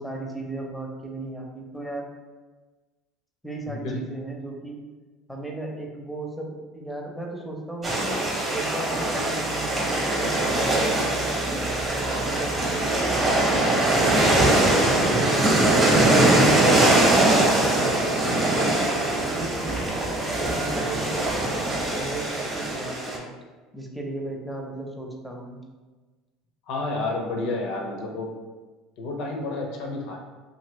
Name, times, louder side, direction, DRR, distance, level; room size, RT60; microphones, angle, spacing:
voice 1, 0.0-2.1 3.4-4.8 5.3-14.2 14.6-18.7 19.2-23.3 23.7-25.6, right 2 dB, ahead, 0 dB, 0.6 m, -36 dB
sound 1, 7.8-23.2, right 2 dB, 25° right, 0.9 m, -22 dB
sound 2, 11.7-21.2, right 2 dB, 50° right, 0.5 m, -36 dB
voice 2, 26.7-28.3 29.0-30.2, left 2 dB, 65° left, 1 dB, 0.7 m, -30 dB
2.6 x 2.6 x 3.0 m, 1.3 s
supercardioid pair, 90°, 0 cm